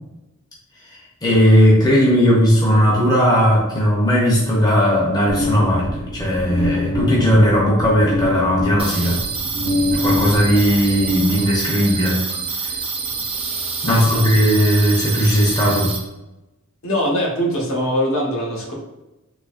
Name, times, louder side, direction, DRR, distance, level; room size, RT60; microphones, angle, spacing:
voice 1, 1.2-9.2 10.0-12.2 13.8-15.9, equal, 20° left, -4 dB, 0.7 m, -16 dB
sound 1, 5.3-11.9, left 2 dB, 75° right, 0.6 m, -25 dB
sound 2, 8.8-16.0, right 5 dB, 25° right, 0.5 m, -27 dB
voice 2, 13.8-14.2 16.8-18.7, equal, 65° left, -2 dB, 0.9 m, -22 dB
3.9 x 2.7 x 2.4 m, 1.0 s
head